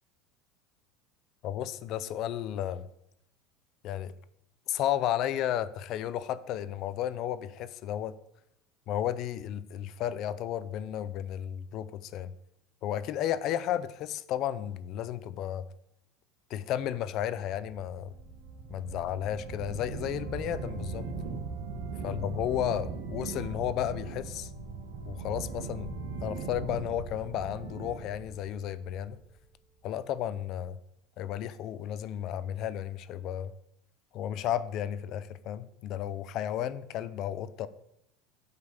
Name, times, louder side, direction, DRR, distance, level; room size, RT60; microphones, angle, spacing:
voice 1, 1.4-2.9 3.8-4.1 4.7-8.2 8.9-12.3 12.8-15.7 16.5-18.1 18.7-21.1 22.0-24.5 25.1-29.2 29.8-30.8 31.2-33.5 34.1-37.7, left 11 dB, 40° left, 0.4 m, -33 dB
sound 1, 17.4-29.5, right 4 dB, 80° right, 1.5 m, -39 dB
8.1 x 5.4 x 6.7 m
cardioid pair, 175°, 0 cm